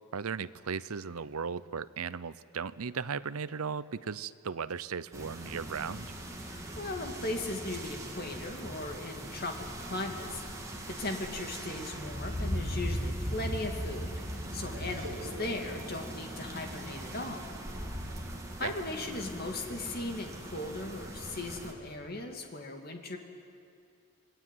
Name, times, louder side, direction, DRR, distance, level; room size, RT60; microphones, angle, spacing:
voice 1, 0.1-6.1 18.6-18.7, right 6 dB, 90° right, 16 dB, 0.7 m, -36 dB
sound 1, 5.1-21.7, equal, 15° right, 2.8 m, -39 dB
voice 2, 6.4-17.5 18.6-23.2, left 2 dB, 45° left, 3 dB, 2.6 m, -38 dB
sound 2, 14.4-17.5 18.0-18.1 19.6-19.9, equal, 65° right, 5.0 m, -46 dB
27.5 x 21.0 x 9.3 m, 2.4 s
head